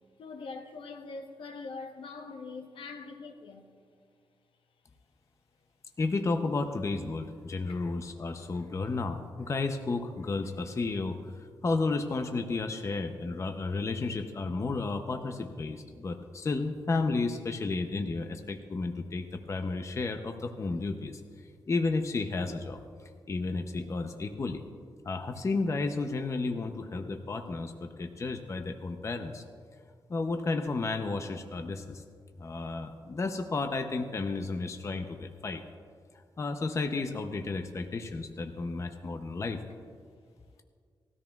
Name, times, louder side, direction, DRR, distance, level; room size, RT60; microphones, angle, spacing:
voice 1, 0.2-3.7 7.7-7.8, left 4 dB, 80° left, 1.0 m, -43 dB
voice 2, 6.0-21.2 21.7-22.8 23.3-24.6 25.0-29.4 30.1-32.0 32.4-35.6 36.4-39.6, left 3 dB, 35° left, 0.6 m, -32 dB
19.0 x 13.5 x 2.4 m
wide cardioid pair, 140°, 9 cm